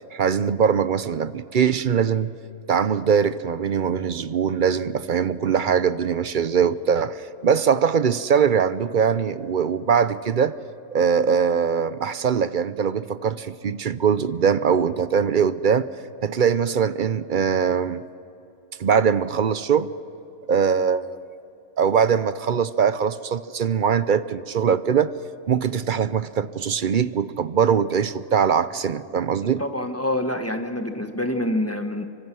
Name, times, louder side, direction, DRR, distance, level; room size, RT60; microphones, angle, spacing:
voice 1, 0.1-2.3 2.7-10.5 10.9-15.9 16.2-18.0 18.8-19.9 20.5-21.2 21.8-25.1 25.5-29.6, right 7 dB, 50° right, 14 dB, 0.7 m, -22 dB
voice 2, 29.4-32.0, left 1 dB, 10° left, 5 dB, 1.4 m, -26 dB
26.5 x 24.5 x 6.3 m, 2.8 s
omnidirectional pair, 1.4 m